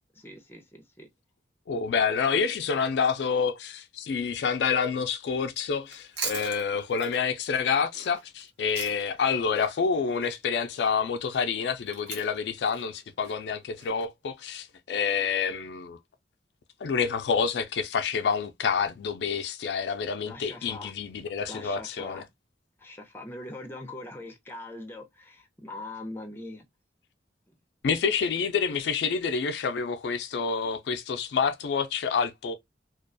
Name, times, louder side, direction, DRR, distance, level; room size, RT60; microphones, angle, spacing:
voice 1, 0.1-1.1 2.5-2.6 20.2-20.9 21.5-22.2 22.8-26.6 27.5-27.6, left 2 dB, 15° left, 0.5 m, -42 dB
voice 2, 1.7-16.0 16.8-22.2 27.8-32.5, left 6 dB, 70° left, 0.3 m, -28 dB
Chewing mastication, 5.8-9.3 9.5-13.9, right 4 dB, 70° right, 0.9 m, -40 dB
2.4 x 2.2 x 2.4 m
head